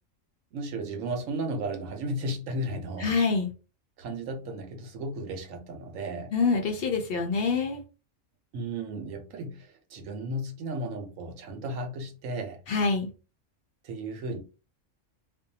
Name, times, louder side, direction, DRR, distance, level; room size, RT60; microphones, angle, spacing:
voice 1, 0.5-3.2 4.0-6.3 8.5-12.6 13.8-14.4, right 1 dB, 85° right, 1.1 m, -34 dB
voice 2, 3.0-3.5 6.3-7.8 12.7-13.1, left 4 dB, 60° left, 0.7 m, -26 dB
2.6 x 2.2 x 2.6 m
omnidirectional pair, 1.3 m